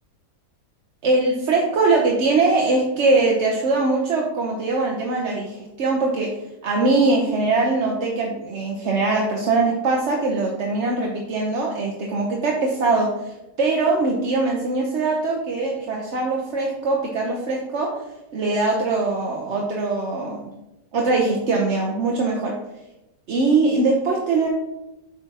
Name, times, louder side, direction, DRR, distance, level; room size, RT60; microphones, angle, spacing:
voice 1, 1.0-6.3 6.6-17.9 18.3-20.5 20.9-22.5 23.3-24.5, right 3 dB, 50° right, -1 dB, 1.0 m, -22 dB
9.0 x 6.0 x 2.9 m, 0.96 s
omnidirectional pair, 1.9 m